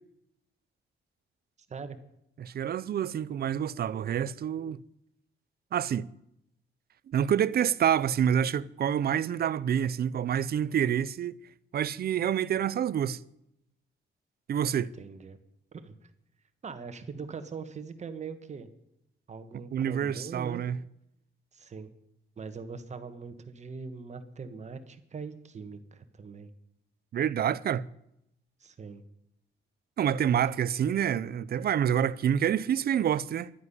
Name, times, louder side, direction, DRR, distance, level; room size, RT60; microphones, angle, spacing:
voice 1, 1.7-2.0 15.0-15.4 15.7-16.1 16.6-18.7 19.3-20.6 21.5-21.9 22.4-26.5 27.4-27.5 28.6-29.0, right 5 dB, 35° right, 1.4 m, -41 dB
voice 2, 2.4-4.8 5.7-6.1 7.1-11.3 11.7-13.2 14.5-14.9 19.7-20.8 27.1-27.8 30.0-33.5, right 9 dB, 50° right, 0.5 m, -27 dB
12.0 x 9.4 x 9.8 m
wide cardioid pair, 155°, 20 cm